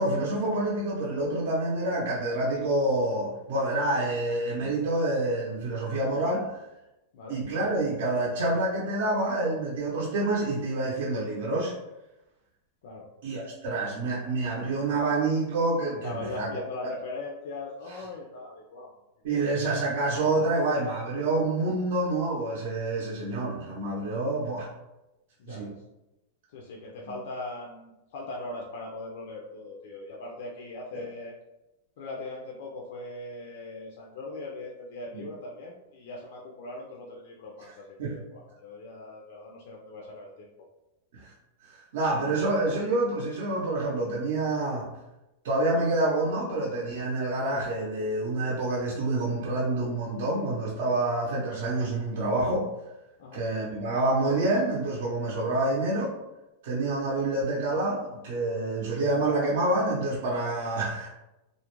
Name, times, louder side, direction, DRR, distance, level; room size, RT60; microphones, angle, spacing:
voice 1, 0.0-6.6 7.3-11.7 13.2-16.5 19.2-24.7 25.5-25.7 35.1-35.2 38.0-38.2 41.1-41.3 41.7-44.9 45.4-52.7 53.3-56.1 56.6-61.1, right 2 dB, 65° right, -5 dB, 0.6 m, -27 dB
voice 2, 16.0-18.9 19.3-19.4 25.4-25.8 26.5-31.3 32.0-40.5 53.2-53.4, left 2 dB, 60° left, -2 dB, 0.4 m, -40 dB
2.4 x 2.0 x 3.0 m, 0.95 s
supercardioid pair, 160°, 0 cm